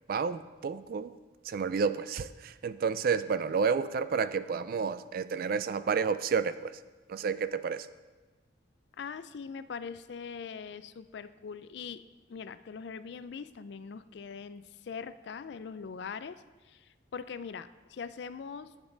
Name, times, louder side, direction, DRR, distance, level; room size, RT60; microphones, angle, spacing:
voice 1, 0.1-1.1 1.4-6.8 7.1-7.9, right 5 dB, 50° right, 14 dB, 0.3 m, -30 dB
voice 2, 9.0-12.0 12.3-18.7, left 6 dB, 60° left, 13 dB, 0.4 m, -42 dB
10.5 x 7.2 x 3.9 m, 1.2 s
head